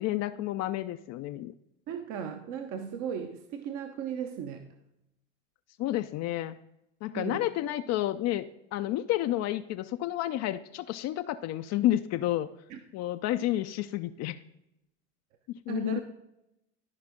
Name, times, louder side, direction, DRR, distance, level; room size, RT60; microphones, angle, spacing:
voice 1, 0.0-1.5 5.8-6.6 7.0-8.5 8.7-12.5 12.9-14.4 15.5-16.0, left 14 dB, 45° left, 9 dB, 0.5 m, -30 dB
voice 2, 1.9-4.7 7.1-7.4 12.7-12.8 15.7-16.0, right 7 dB, 50° right, 6 dB, 1.0 m, -36 dB
13.0 x 5.1 x 3.7 m, 0.84 s
hypercardioid pair, 90°, 37 cm